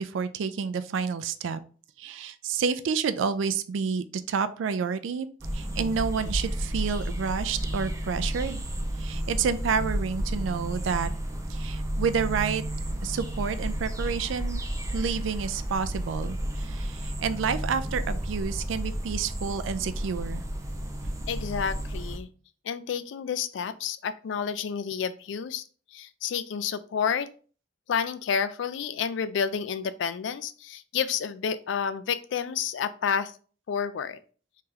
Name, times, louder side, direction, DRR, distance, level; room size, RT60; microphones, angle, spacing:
voice 1, 0.0-1.6 2.0-5.3 5.5-8.6 9.0-11.1 11.5-12.6 13.0-14.6 14.9-20.4, right 6 dB, 75° right, 13 dB, 0.3 m, -29 dB
sound 1, 5.4-22.2, right 1 dB, 15° right, 0.5 m, -32 dB
voice 2, 21.3-22.3 22.6-25.6 25.9-27.3 27.9-33.4 33.7-34.2, left 7 dB, 65° left, 13 dB, 0.3 m, -30 dB
3.2 x 2.9 x 3.6 m, 0.41 s
head